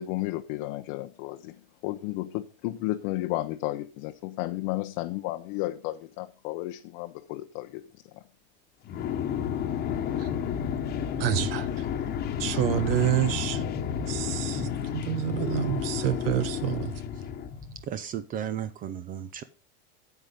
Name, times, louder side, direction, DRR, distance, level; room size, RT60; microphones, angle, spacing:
voice 1, 0.0-8.2, left 17 dB, 50° left, 0.8 m, -33 dB
sound 1, 8.9-17.8, left 8 dB, 30° left, 1.3 m, -31 dB
voice 2, 11.2-11.7 12.4-13.6 14.0-16.9, right 12 dB, 75° right, 1.2 m, -28 dB
voice 3, 17.9-19.4, right 9 dB, 30° right, 0.6 m, -34 dB
9.2 x 7.9 x 5.3 m
supercardioid pair, 145°, 29 cm